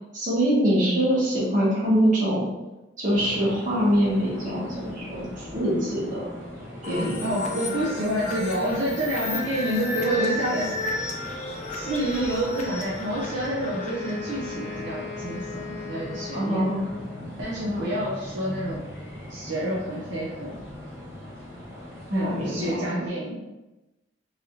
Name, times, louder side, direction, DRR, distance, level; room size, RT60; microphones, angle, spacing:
voice 1, 0.1-2.5 3.0-6.3 6.8-7.3 16.3-16.8 17.6-17.8 22.1-23.1, equal, 45° right, -7 dB, 1.3 m, -24 dB
sound 1, 3.1-22.8, left 1 dB, 15° right, 1.2 m, -40 dB
sound 2, 6.8-15.4, left 2 dB, 40° left, 0.5 m, -33 dB
voice 2, 7.2-10.7 11.7-16.8 17.4-18.8 19.3-20.6 22.1-23.5, right 1 dB, 70° right, -6 dB, 0.6 m, -28 dB
Wind instrument woodwind instrument, 13.6-17.3, left 4 dB, 85° left, 0.7 m, -38 dB
3.1 x 2.6 x 2.7 m, 1.0 s
head